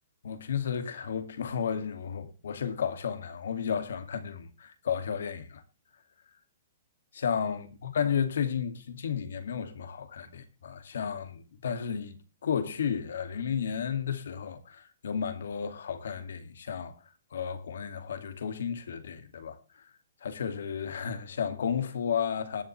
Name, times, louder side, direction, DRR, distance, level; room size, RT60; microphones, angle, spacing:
voice 1, 0.2-5.6 7.1-12.2 12.4-16.9 17.3-19.9 20.2-22.6, left 7 dB, 80° left, 2.4 m, -33 dB
20.0 x 7.3 x 3.3 m
hypercardioid pair, 140°, 0 cm